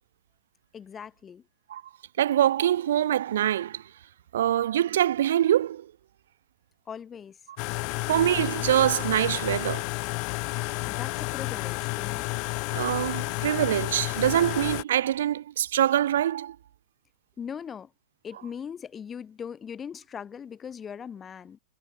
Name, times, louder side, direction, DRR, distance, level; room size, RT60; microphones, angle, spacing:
voice 1, 0.7-1.4 6.9-7.4 10.9-12.2 17.4-17.9 18.2-21.6, left 7 dB, 20° left, 6.8 m, -40 dB
voice 2, 2.2-3.8 4.3-5.9 8.1-9.9 12.7-16.6, right 11 dB, 90° right, 0.4 m, -24 dB
sound 1, 7.6-14.8, left 33 dB, 45° left, 1.0 m, -31 dB
supercardioid pair, 150°, 0 cm